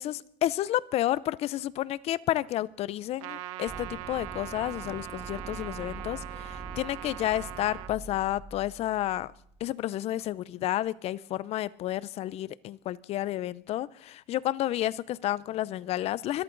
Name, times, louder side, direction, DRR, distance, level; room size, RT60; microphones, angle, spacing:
voice 1, 0.0-9.3 9.6-16.4, left 13 dB, 40° left, 20 dB, 0.5 m, -31 dB
Trumpet, 3.2-7.9, right 16 dB, 90° right, 0.9 m, -41 dB
sound 1, 3.7-9.6, right 3 dB, 20° right, 1.4 m, -44 dB
24.5 x 13.5 x 3.9 m, 0.64 s
cardioid pair, 145°, 17 cm